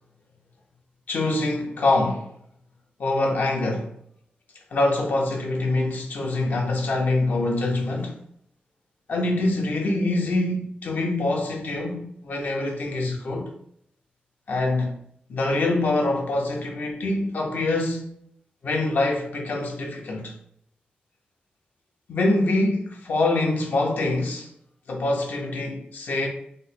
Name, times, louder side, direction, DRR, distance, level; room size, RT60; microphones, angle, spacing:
voice 1, 1.1-2.3 3.0-3.9 4.7-8.2 9.1-13.5 14.5-14.9 15.3-18.1 18.6-20.3 22.1-24.5 24.9-26.3, left 2 dB, 70° left, 0.8 m, -24 dB
3.1 x 2.2 x 4.2 m
wide cardioid pair, 85°, 3 cm